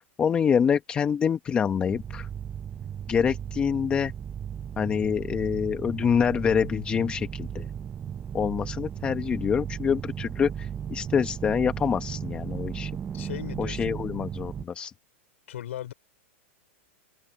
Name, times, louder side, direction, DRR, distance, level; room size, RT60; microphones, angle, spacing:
voice 1, 0.0-2.3 3.1-4.1 4.8-7.7 8.3-12.9 13.6-14.9, left 7 dB, 15° left, 1.0 m, -26 dB
sound 1, 1.9-14.7, right 8 dB, 15° right, 0.4 m, -36 dB
voice 2, 13.1-14.0 15.5-15.9, left 12 dB, 80° left, 4.9 m, -37 dB
open air
supercardioid pair, 155°, 7 cm